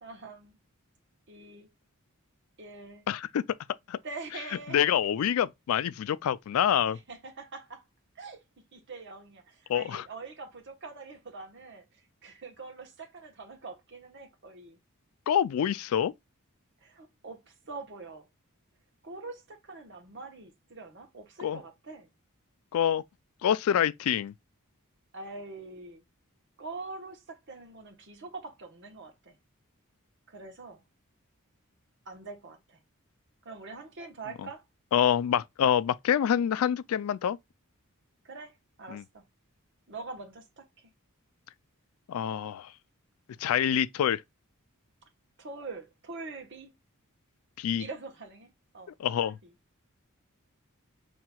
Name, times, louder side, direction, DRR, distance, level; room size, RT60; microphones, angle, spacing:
voice 1, 0.0-0.6 1.3-1.7 2.6-3.1 4.0-5.0 6.9-7.8 8.1-8.4 8.7-14.8 16.8-18.3 19.0-22.1 25.1-26.0 26.6-29.4 30.3-30.8 32.0-32.8 33.4-34.6 38.2-39.3 39.9-40.9 45.4-46.7 47.8-48.9 49.2-49.5, right 3 dB, 55° right, 1.1 m, -44 dB
voice 2, 3.1-3.4 3.9-4.0 4.7-7.0 9.7-10.0 15.3-16.1 21.4-21.6 22.7-23.0 23.4-24.3 34.9-37.4 38.9-39.0 42.1-42.7 43.4-44.2 47.6-47.8 49.0-49.4, left 9 dB, 70° left, 0.3 m, -26 dB
5.8 x 2.8 x 2.2 m
head